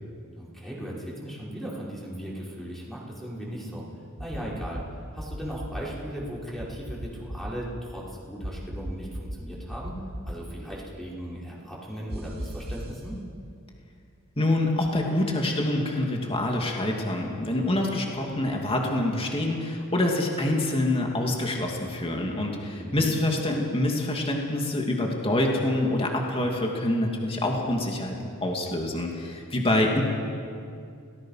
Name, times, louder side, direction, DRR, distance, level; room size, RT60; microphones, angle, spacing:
voice 1, 0.4-3.8 4.2-4.8 5.1-13.2 22.8-23.1, equal, ahead, -6 dB, 5.4 m, -37 dB
sound 1, 4.2-4.8 5.2-5.8 6.6-7.5 8.4-9.4 9.7-10.4 12.1-12.9, equal, 45° right, 2.5 m, -35 dB
voice 2, 14.4-30.0, left 1 dB, 25° left, 0 dB, 2.7 m, -26 dB
29.5 x 19.0 x 5.9 m, 2.4 s
head